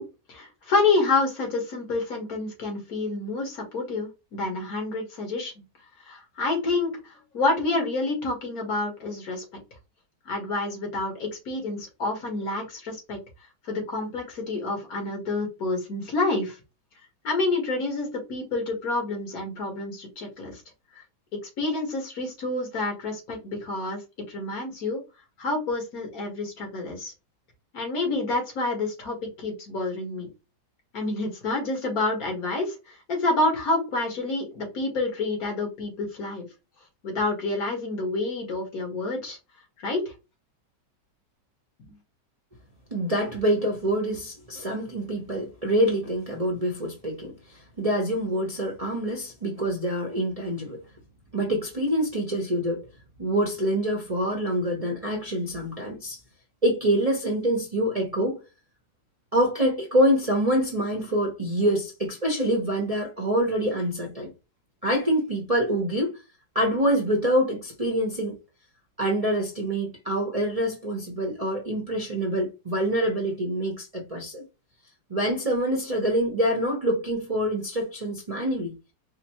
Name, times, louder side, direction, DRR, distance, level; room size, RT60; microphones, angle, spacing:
voice 1, 0.0-5.6 6.0-9.4 10.3-13.2 13.6-16.6 17.2-20.6 21.0-21.1 21.6-24.0 24.3-25.0 25.4-27.1 27.7-30.3 30.9-36.5 37.0-39.4 39.8-40.0, left 2 dB, 55° left, 2.0 m, -28 dB
voice 2, 42.9-47.3 47.8-50.8 51.3-52.9 53.2-56.2 56.6-58.4 59.3-64.3 64.8-66.2 66.5-68.3 69.0-74.4 75.1-78.7, equal, 30° right, 0.6 m, -26 dB
5.0 x 2.2 x 2.9 m
omnidirectional pair, 1.9 m